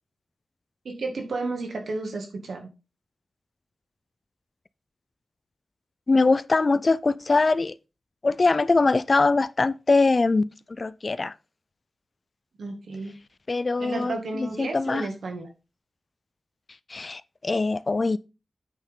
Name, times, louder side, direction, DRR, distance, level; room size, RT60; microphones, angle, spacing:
voice 1, 0.8-2.7 12.6-13.2 13.8-15.5, right 3 dB, 70° right, 2.1 m, -32 dB
voice 2, 6.1-7.7 8.2-10.5 10.8-11.3 13.5-15.1 16.9-18.2, left 3 dB, 30° left, 0.3 m, -22 dB
9.1 x 5.5 x 3.7 m
wide cardioid pair, 175°, 0 cm